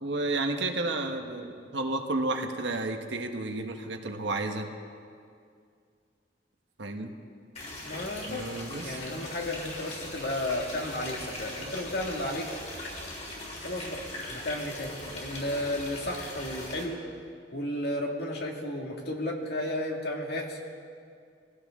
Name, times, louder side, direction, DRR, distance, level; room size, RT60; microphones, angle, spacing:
voice 1, 0.0-4.7 6.8-7.1 8.3-9.0, right 2 dB, 80° right, 4 dB, 1.3 m, -31 dB
sound 1, 7.6-16.8, left 1 dB, 40° left, 3.7 m, -40 dB
voice 2, 7.8-8.4 8.8-12.5 13.6-14.0 14.3-17.0 17.5-20.6, left 1 dB, 60° left, 0 dB, 2.1 m, -33 dB
22.5 x 16.0 x 3.8 m, 2.3 s
head